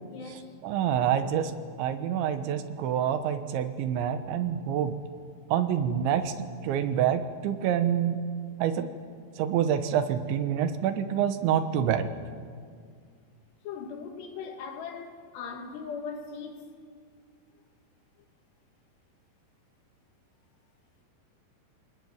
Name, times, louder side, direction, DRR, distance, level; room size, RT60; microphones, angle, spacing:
voice 1, 0.1-0.5 13.6-16.7, left 5 dB, 70° left, 4.1 m, -39 dB
voice 2, 0.6-1.5 1.8-4.9 5.5-6.3 6.6-8.2 8.6-8.9 9.4-12.1, right 9 dB, 85° right, 3.5 m, -27 dB
28.0 x 20.0 x 9.5 m
omnidirectional pair, 5.1 m